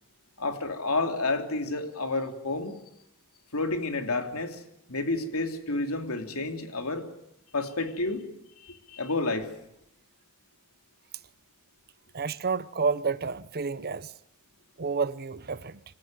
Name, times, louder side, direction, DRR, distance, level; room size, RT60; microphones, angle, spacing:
voice 1, 0.4-2.7 3.5-4.6 4.9-7.0 7.5-8.2 8.6-9.5, left 2 dB, 85° left, 3.1 m, -30 dB
voice 2, 12.1-14.1 14.8-15.8, right 5 dB, 50° right, 0.9 m, -30 dB
27.0 x 15.5 x 9.1 m
head